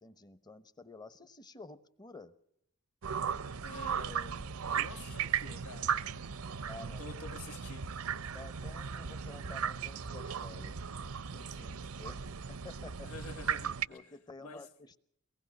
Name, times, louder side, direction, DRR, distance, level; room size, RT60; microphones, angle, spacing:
voice 1, 0.0-2.4 6.6-7.0 8.3-10.8 11.6-12.2 12.5-13.2 13.9-15.0, left 2 dB, 20° left, 0.9 m, -51 dB
sound 1, 3.0-13.9, right 7 dB, 75° right, 0.7 m, -37 dB
voice 2, 3.6-6.0 6.9-8.0 11.3-11.9 13.0-14.1 14.4-14.7, left 3 dB, 90° left, 1.3 m, -49 dB
23.0 x 19.0 x 6.1 m
head